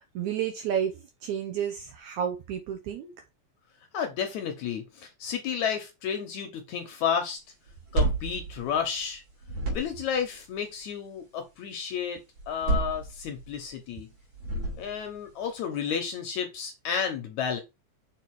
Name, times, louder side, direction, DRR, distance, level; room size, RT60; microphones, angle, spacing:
voice 1, 0.0-3.1, right 9 dB, 75° right, 1.8 m, -31 dB
voice 2, 3.9-7.4 7.9-9.2 9.7-12.2 12.5-14.1 14.8-17.6, left 7 dB, 70° left, 1.9 m, -31 dB
sound 1, 7.7-9.1 9.4-10.2 12.4-13.6 14.3-15.2, right 2 dB, 50° right, 3.9 m, -30 dB
6.8 x 3.9 x 4.6 m
omnidirectional pair, 4.1 m